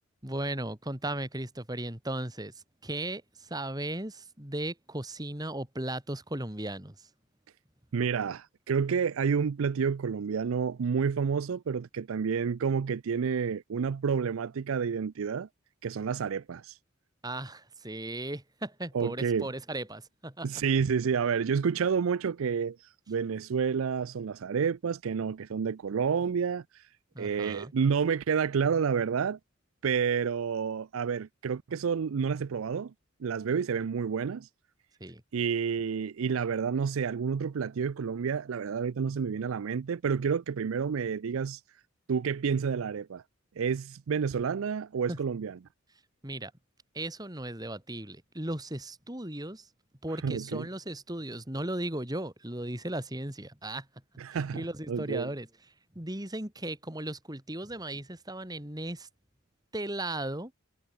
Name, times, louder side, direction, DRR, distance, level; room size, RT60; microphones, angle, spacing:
voice 1, 0.2-7.1 17.2-20.5 27.1-27.7 35.0-35.2 45.1-45.2 46.2-46.5 46.9-49.7 50.0-53.9 54.3-55.5 55.9-59.1 59.7-60.5, right 1 dB, 20° right, 2.7 m, -36 dB
voice 2, 7.9-15.5 15.8-16.8 18.9-19.5 20.4-26.8 27.2-29.4 29.8-32.9 33.2-34.5 35.3-41.6 42.1-43.2 43.6-45.6 50.2-50.7 54.2-55.3, right 6 dB, 75° right, 0.4 m, -29 dB
head